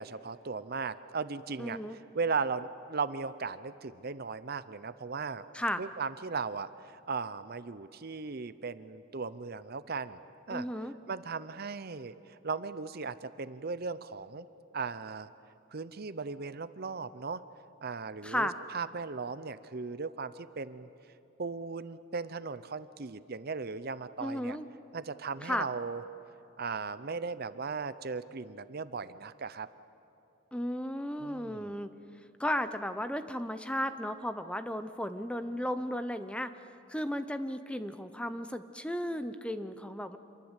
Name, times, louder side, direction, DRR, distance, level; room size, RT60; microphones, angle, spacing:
voice 1, 0.0-1.8 2.1-5.4 5.8-10.2 10.5-10.7 11.1-14.5 14.7-15.3 15.7-17.4 17.8-20.9 21.4-24.6 24.9-26.0 26.6-29.7 31.2-31.7, right 4 dB, 50° right, 13 dB, 0.7 m, -37 dB
voice 2, 1.6-2.0 5.5-5.8 10.5-10.9 18.2-18.5 24.2-24.7 25.4-25.7 30.5-31.9 32.4-36.5 36.9-40.2, equal, 5° left, 10 dB, 0.8 m, -34 dB
27.0 x 22.5 x 8.2 m, 2.8 s
head